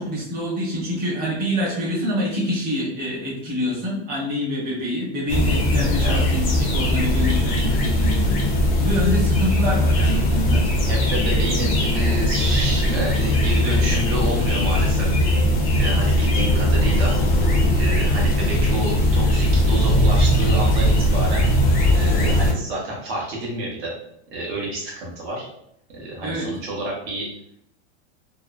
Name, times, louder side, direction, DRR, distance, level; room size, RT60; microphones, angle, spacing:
voice 1, 0.0-10.6 26.2-26.5, left 1 dB, 25° right, -5 dB, 1.0 m, -26 dB
sound 1, 5.3-22.5, left 1 dB, 25° left, 0.5 m, -19 dB
voice 2, 6.0-6.5 10.9-15.2 15.8-17.1 17.8-21.5 21.9-23.9 24.3-25.5 25.9-27.3, right 1 dB, 65° right, -3 dB, 1.1 m, -29 dB
sound 2, 9.7-15.2, left 3 dB, 75° left, 0.6 m, -34 dB
3.0 x 2.0 x 2.3 m, 0.71 s
supercardioid pair, 155°, 34 cm